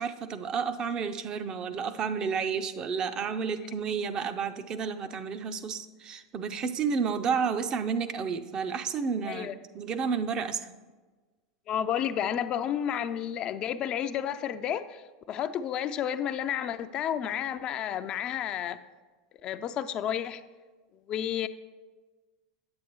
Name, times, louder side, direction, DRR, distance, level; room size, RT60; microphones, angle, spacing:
voice 1, 0.0-10.7, right 6 dB, 35° right, 9 dB, 0.5 m, -31 dB
voice 2, 11.7-15.0 15.3-18.8 19.4-20.4 21.1-21.5, left 9 dB, 40° left, 11 dB, 0.3 m, -31 dB
8.5 x 7.7 x 3.0 m, 1.3 s
hypercardioid pair, 90°, 2 cm